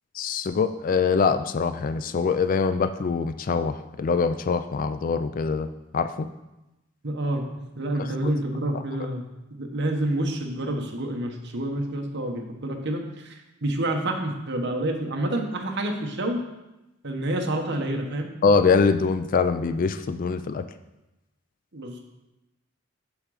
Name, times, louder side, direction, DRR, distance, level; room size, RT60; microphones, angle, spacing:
voice 1, 0.1-5.7 5.9-6.3 18.4-20.6, left 5 dB, 40° left, 10 dB, 0.4 m, -23 dB
voice 2, 7.0-9.3 9.6-13.3 13.6-16.4 17.0-18.3 21.7-22.0, right 1 dB, 60° right, 2 dB, 1.2 m, -28 dB
11.0 x 3.8 x 4.9 m, 0.96 s
head